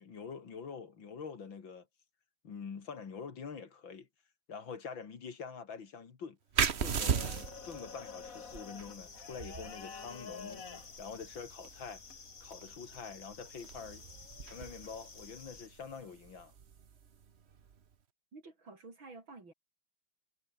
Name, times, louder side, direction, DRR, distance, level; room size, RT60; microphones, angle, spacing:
voice 1, 0.0-1.9 2.4-4.1 4.5-6.4 6.8-10.7 11.0-12.0 12.4-14.0 14.4-16.5, left 6 dB, 65° left, 3.0 m, -45 dB
sound 1, 6.5-17.8, right 7 dB, 40° right, 1.0 m, -39 dB
sound 2, 7.1-15.7, left 5 dB, 40° left, 2.1 m, -49 dB
voice 2, 18.3-19.5, right 3 dB, 65° right, 5.7 m, -51 dB
omnidirectional pair, 2.3 m